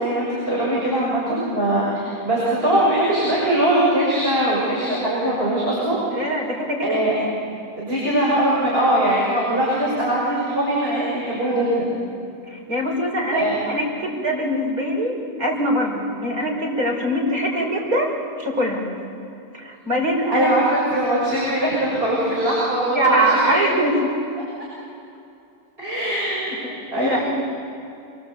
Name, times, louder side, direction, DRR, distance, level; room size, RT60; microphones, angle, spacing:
voice 1, 0.0-6.0 6.8-7.1 7.8-11.9 13.3-13.6 20.3-23.6 25.8-26.5 26.9-27.2, right 1 dB, 40° right, -6 dB, 7.1 m, -21 dB
voice 2, 6.1-7.0 12.5-18.9 19.5-20.5 22.9-24.2 26.6-27.2, equal, 85° right, -1 dB, 6.3 m, -23 dB
28.0 x 24.0 x 8.4 m, 2.6 s
omnidirectional pair, 1.5 m